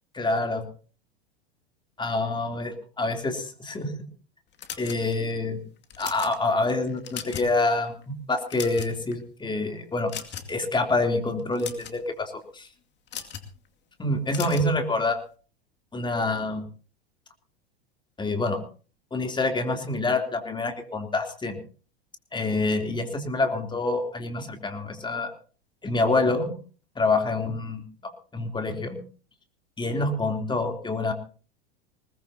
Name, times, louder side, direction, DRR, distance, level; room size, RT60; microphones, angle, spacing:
voice 1, 0.1-0.6 2.0-3.9 4.8-5.6 6.0-8.0 8.3-10.1 10.5-12.7 14.0-15.2 15.9-16.6 18.2-18.6 19.1-21.6 22.3-25.3 25.8-26.5 26.9-29.0 29.8-31.1, left 2 dB, 15° left, 5 dB, 3.2 m, -26 dB
sound 1, 4.6-5.3 5.8-6.4 6.9-7.6 7.9-8.0 8.4-9.1 10.1-10.6 11.4-12.0 13.1-13.5 14.3-14.7, left 9 dB, 35° left, 2.4 m, -37 dB
21.0 x 19.5 x 2.8 m, 0.38 s
hypercardioid pair, 95°, 31 cm